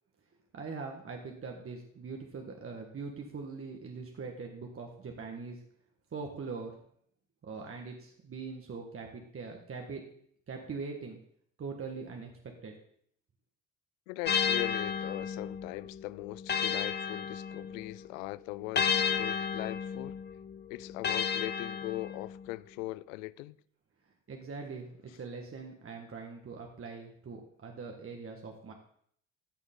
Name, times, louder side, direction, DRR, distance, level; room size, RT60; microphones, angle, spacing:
voice 1, 0.5-5.6 6.1-6.7 7.4-10.0 10.5-11.2 11.6-12.3 12.6-12.7 24.3-28.7, right 4 dB, 35° right, 1.6 m, -42 dB
voice 2, 14.1-20.2 20.7-23.6, left 19 dB, 80° left, 0.5 m, -40 dB
Swinging English Tuned Bell, 14.2-18.0 18.7-22.4, left 7 dB, 25° left, 0.7 m, -33 dB
14.5 x 6.3 x 3.8 m
hypercardioid pair, 60°, 38 cm